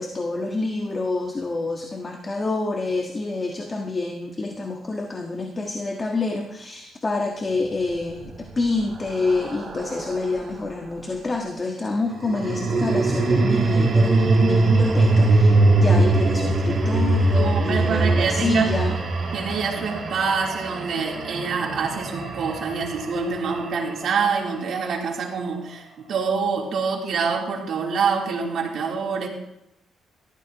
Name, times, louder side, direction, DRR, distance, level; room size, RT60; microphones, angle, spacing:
voice 1, 0.0-15.5 15.8-19.0, left 3 dB, 30° left, 2 dB, 1.5 m, -27 dB
sound 1, 8.0-10.5 12.1-24.4, right 2 dB, 40° right, 5.0 m, -22 dB
voice 2, 17.4-18.9 19.3-29.3, right 5 dB, 65° right, -1 dB, 3.5 m, -26 dB
18.5 x 14.5 x 3.1 m, 0.82 s
cardioid pair, 90°, 0 cm